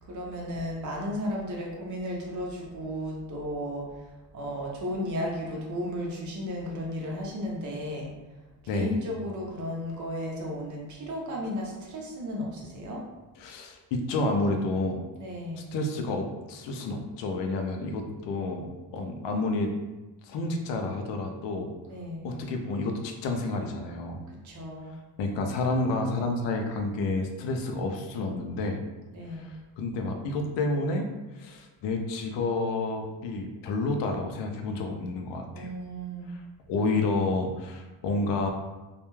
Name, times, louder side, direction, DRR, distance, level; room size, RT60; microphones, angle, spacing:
voice 1, 0.0-8.1 8.7-13.0 15.2-15.7 21.9-22.3 24.3-24.9 29.1-29.6 35.5-36.3, equal, 45° right, -2 dB, 0.7 m, -34 dB
voice 2, 13.4-15.0 15.7-19.7 20.2-21.7 22.2-24.2 25.2-28.8 29.3-31.1 31.4-35.7 36.7-38.5, left 2 dB, 90° left, 4 dB, 0.5 m, -30 dB
2.3 x 2.2 x 3.0 m, 1.1 s
cardioid pair, 150°, 42 cm